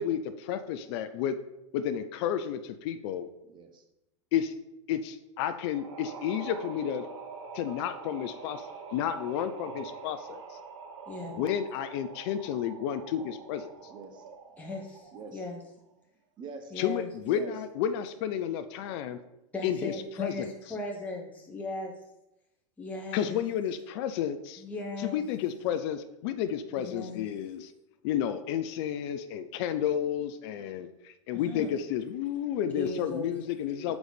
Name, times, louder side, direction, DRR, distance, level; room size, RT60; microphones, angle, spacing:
voice 1, 0.0-1.4 1.7-3.3 4.3-4.5 4.9-7.1 7.5-10.6 11.4-13.7 16.8-19.2 19.6-20.5 23.1-24.6 25.0-27.7 28.0-34.0, left 9 dB, 55° left, 9 dB, 0.5 m, -31 dB
voice 2, 3.5-3.8 13.9-14.2 15.1-15.5 16.4-16.8 17.2-17.5 33.2-33.3 33.8-34.0, right 4 dB, 30° right, 5 dB, 0.8 m, -45 dB
sound 1, 5.7-15.4, right 5 dB, 70° right, 0.8 m, -45 dB
voice 3, 11.1-11.4 14.6-15.0 15.3-15.6 16.7-17.1 19.5-21.9 22.8-23.4 24.6-25.2 26.8-27.3 31.4-31.7 32.7-33.2, left 2 dB, 10° left, -1 dB, 0.9 m, -37 dB
4.7 x 4.0 x 5.1 m, 0.89 s
hypercardioid pair, 115°, 16 cm